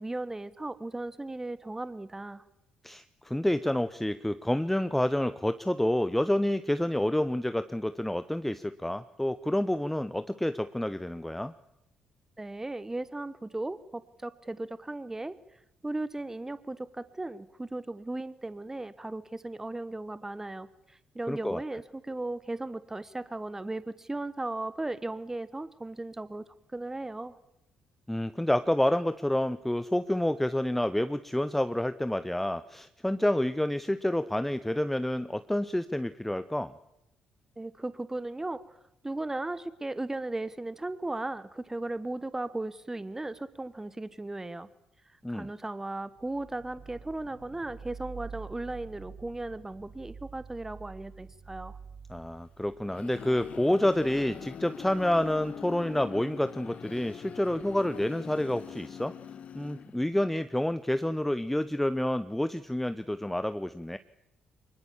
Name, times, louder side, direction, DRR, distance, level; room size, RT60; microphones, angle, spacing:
voice 1, 0.0-2.4 12.4-15.4 15.8-26.4 26.7-27.4 37.6-38.6 39.0-44.7 45.1-51.8, right 2 dB, 15° right, 16 dB, 1.1 m, -36 dB
voice 2, 2.8-11.5 21.3-21.6 28.1-36.7 45.2-45.5 52.1-59.1 59.5-64.0, left 1 dB, 5° left, 13 dB, 0.8 m, -28 dB
sound 1, 46.1-56.0, right 5 dB, 65° right, 2.9 m, -49 dB
sound 2, 52.6-60.3, left 8 dB, 50° left, 0.8 m, -43 dB
24.5 x 21.0 x 7.3 m, 0.84 s
figure-of-eight pair, 45°, 3 cm